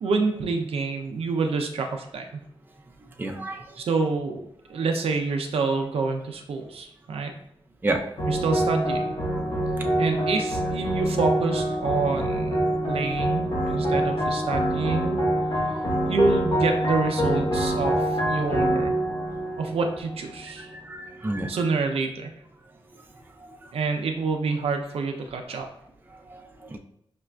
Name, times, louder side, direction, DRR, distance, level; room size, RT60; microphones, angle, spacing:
voice 1, 0.0-2.4 3.8-4.4 4.7-7.3 8.3-9.1 10.0-15.2 16.1-19.0 19.6-20.7 21.5-22.3 23.7-25.7, right 4 dB, 85° right, 4 dB, 0.5 m, -27 dB
voice 2, 3.2-3.6 7.8-8.0 20.7-21.5 26.3-26.8, right 2 dB, 20° right, 3 dB, 0.4 m, -29 dB
sound 1, 8.2-20.7, right 1 dB, 55° left, 0.9 m, -25 dB
5.1 x 2.4 x 2.2 m, 0.74 s
wide cardioid pair, 85°, 10 cm